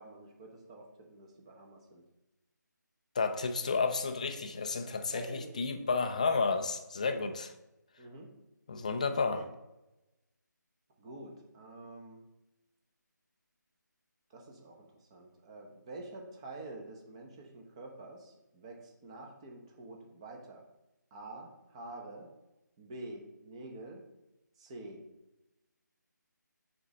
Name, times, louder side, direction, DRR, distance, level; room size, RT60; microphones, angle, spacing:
voice 1, 0.0-2.0 5.1-5.7 8.0-8.3 9.1-9.5 11.0-12.2 14.3-20.6 21.1-22.3 22.8-24.0 24.6-25.0, right 2 dB, 15° right, 1 dB, 0.8 m, -47 dB
voice 2, 3.1-7.5 8.7-9.5, left 4 dB, 20° left, 8 dB, 0.4 m, -31 dB
6.6 x 4.3 x 5.1 m, 0.95 s
figure-of-eight pair, 170°, 10 cm